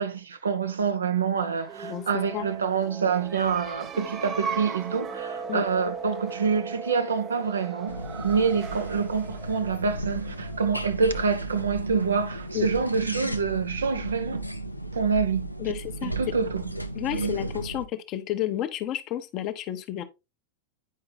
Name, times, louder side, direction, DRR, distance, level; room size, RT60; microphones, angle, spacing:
voice 1, 0.0-8.0 8.2-14.4 14.9-15.5 16.0-16.6 17.1-17.5, right 5 dB, 70° right, 0.7 m, -26 dB
sound 1, 1.5-11.0, right 6 dB, 30° right, 0.6 m, -37 dB
sound 2, 7.9-17.8, right 1 dB, 90° left, 0.5 m, -35 dB
voice 2, 15.6-16.1 16.9-20.0, left 13 dB, 35° left, 0.8 m, -31 dB
9.3 x 4.8 x 2.3 m
figure-of-eight pair, 90°, 0 cm